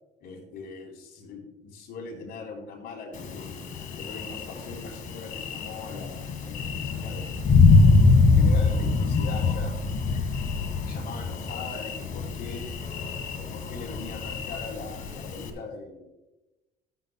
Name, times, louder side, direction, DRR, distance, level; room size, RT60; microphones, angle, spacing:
voice 1, 0.2-3.5 3.9-7.3 7.9-9.7 10.8-12.9 13.3-16.0, left 4 dB, 70° left, 0 dB, 3.8 m, -41 dB
Thunder, 3.1-15.5, left 4 dB, 50° left, 1.8 m, -24 dB
14.5 x 12.5 x 2.2 m, 1.0 s
cardioid pair, 110°, 17 cm